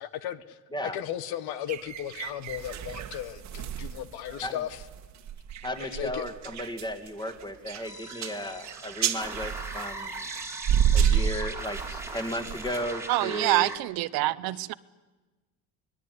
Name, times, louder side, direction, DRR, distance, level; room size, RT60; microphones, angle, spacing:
voice 1, 0.0-4.8 5.8-6.2 11.9-12.0, left 11 dB, 65° left, 1.5 m, -36 dB
sound 1, 1.7-13.1, right 9 dB, 40° right, 1.6 m, -31 dB
voice 2, 5.6-10.1 10.9-11.8 12.1-13.7, equal, 10° left, 2.5 m, -35 dB
sound 2, 7.8-13.8, right 2 dB, 5° right, 2.5 m, -39 dB
voice 3, 13.1-14.7, right 18 dB, 60° right, 0.9 m, -26 dB
24.0 x 21.5 x 9.7 m
cardioid pair, 130°, 40 cm